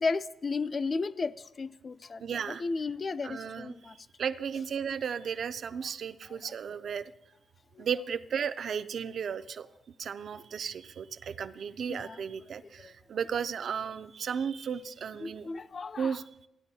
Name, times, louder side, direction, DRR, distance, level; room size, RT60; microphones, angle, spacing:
voice 1, 0.0-2.2 2.6-4.0 7.8-7.9 11.9-12.2 12.8-12.9 15.2-16.2, left 4 dB, 40° left, 0.3 m, -34 dB
voice 2, 2.2-2.6 3.2-3.7 4.2-7.0 7.8-9.7 10.0-15.5 16.0-16.2, right 7 dB, 60° right, 0.4 m, -34 dB
14.5 x 9.7 x 2.7 m
cardioid pair, 110°, 0 cm